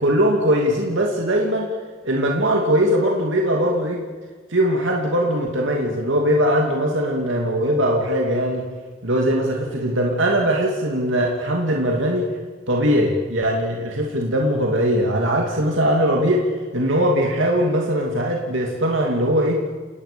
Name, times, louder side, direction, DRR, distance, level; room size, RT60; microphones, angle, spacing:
voice 1, 0.0-1.7 2.0-4.0 4.5-8.7 9.0-12.3 12.7-16.4 16.7-19.6, equal, 60° right, 0 dB, 2.7 m, -20 dB
30.0 x 19.0 x 7.0 m, 1.5 s
head